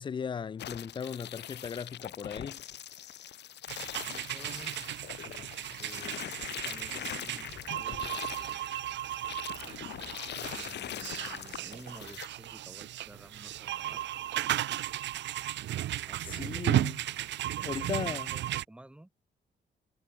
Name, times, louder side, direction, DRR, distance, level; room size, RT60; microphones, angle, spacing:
voice 1, 0.0-2.6 16.3-17.0 17.6-18.3, left 6 dB, 25° left, 0.4 m, -37 dB
sound 1, 0.6-12.3, left 11 dB, 70° left, 2.1 m, -42 dB
sound 2, 3.7-18.6, right 13 dB, 80° right, 0.7 m, -35 dB
voice 2, 4.0-4.9 5.2-6.2 6.6-7.5 7.8-8.6 10.5-14.0 16.0-16.7 17.5-19.1, right 1 dB, 5° right, 2.1 m, -52 dB
wide cardioid pair, 165°, 19 cm